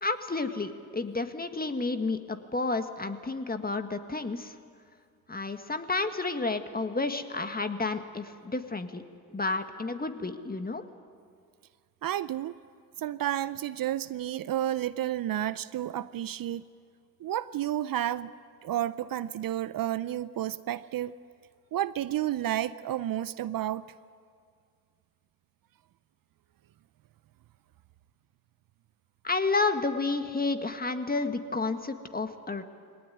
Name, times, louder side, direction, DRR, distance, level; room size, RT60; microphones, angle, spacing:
voice 1, 0.0-4.6 5.3-9.0 9.3-10.9 29.2-32.6, left 3 dB, 20° left, 8 dB, 1.7 m, -31 dB
voice 2, 12.0-12.5 13.0-16.6 17.2-18.3 18.6-21.1 21.7-23.8, right 12 dB, 55° right, 16 dB, 0.7 m, -31 dB
21.0 x 18.5 x 9.2 m, 2.1 s
supercardioid pair, 55°, 41 cm